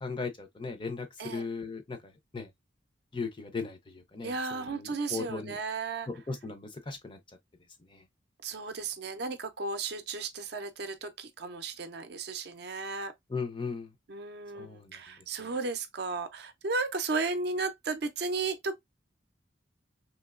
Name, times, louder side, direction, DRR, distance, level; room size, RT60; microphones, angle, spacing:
voice 1, 0.0-2.5 3.1-5.6 6.1-7.2 7.9-8.0 13.3-13.9 14.5-15.0 15.4-15.5, left 4 dB, 25° left, 0.5 m, -37 dB
voice 2, 4.2-6.1 8.4-13.1 14.1-18.8, right 4 dB, 55° right, 0.5 m, -34 dB
3.1 x 2.8 x 2.4 m
head